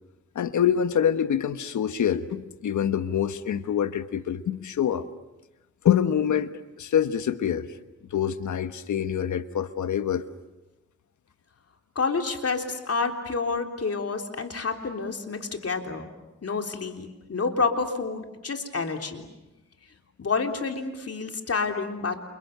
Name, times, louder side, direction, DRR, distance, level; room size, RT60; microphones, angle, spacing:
voice 1, 0.3-5.1 5.8-7.7 8.1-10.2, left 9 dB, 90° left, 11 dB, 1.3 m, -25 dB
voice 2, 11.9-16.1 16.4-19.2 20.2-22.2, left 4 dB, 55° left, 4 dB, 3.5 m, -29 dB
29.5 x 28.5 x 6.7 m, 1.0 s
cardioid pair, 75°, 29 cm